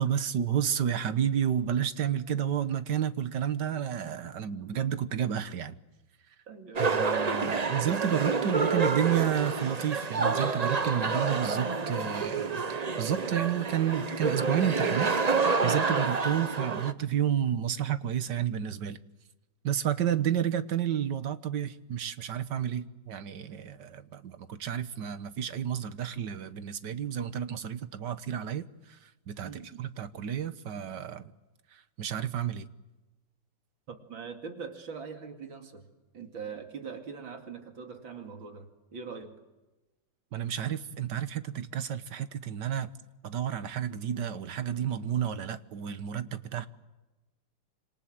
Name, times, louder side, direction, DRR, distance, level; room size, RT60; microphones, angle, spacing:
voice 1, 0.0-5.8 6.8-19.0 19.6-28.7 29.3-29.5 29.8-31.3 31.7-32.7 40.3-42.9 43.2-46.7, right 9 dB, 65° right, 1.8 m, -31 dB
voice 2, 6.5-7.1 29.4-29.8 33.9-35.9 36.1-39.4, right 5 dB, 85° right, 3.3 m, -42 dB
sound 1, 6.8-16.9, right 4 dB, 30° right, 0.7 m, -28 dB
28.5 x 27.0 x 7.7 m
omnidirectional pair, 2.1 m